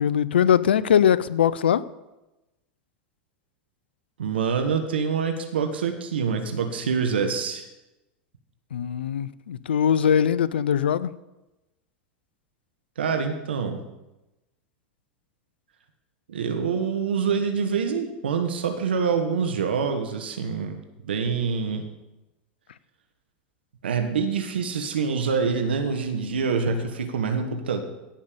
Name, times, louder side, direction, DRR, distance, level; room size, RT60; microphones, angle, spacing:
voice 1, 0.0-1.8 8.7-11.1, left 8 dB, 90° left, 18 dB, 0.5 m, -21 dB
voice 2, 4.2-7.6 13.0-13.8 16.3-20.8 21.0-21.9 23.8-27.8, right 6 dB, 90° right, 6 dB, 1.3 m, -26 dB
16.5 x 5.5 x 6.8 m, 0.99 s
hypercardioid pair, 95°, 5 cm